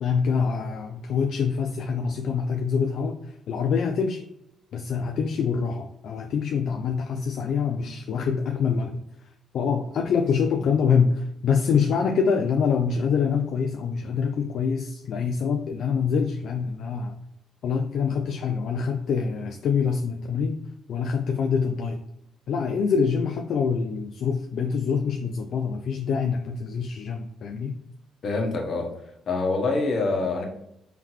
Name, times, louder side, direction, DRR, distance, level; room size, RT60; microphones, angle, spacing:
voice 1, 0.0-4.2 4.7-8.9 9.2-9.3 9.5-17.2 17.6-20.6 20.9-22.0 22.5-27.8, left 6 dB, 70° left, 4 dB, 0.3 m, -25 dB
voice 2, 28.2-28.9 29.3-30.4, left 3 dB, 55° left, 2 dB, 1.0 m, -25 dB
3.8 x 3.4 x 3.0 m, 0.81 s
cardioid pair, 90°, 0 cm